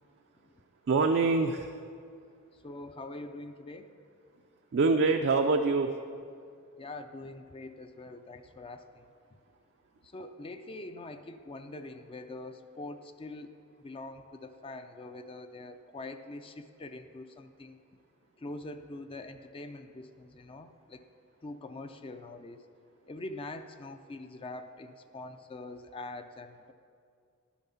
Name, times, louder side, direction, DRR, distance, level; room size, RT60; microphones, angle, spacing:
voice 1, 0.9-1.8 4.7-6.0, right 3 dB, 50° right, 5 dB, 0.4 m, -25 dB
voice 2, 2.5-3.9 6.8-9.4 10.0-13.5 13.8-17.8 18.4-21.0 21.4-22.7 23.1-26.7, left 2 dB, 25° left, 8 dB, 0.4 m, -44 dB
11.5 x 7.2 x 5.6 m, 2.3 s
head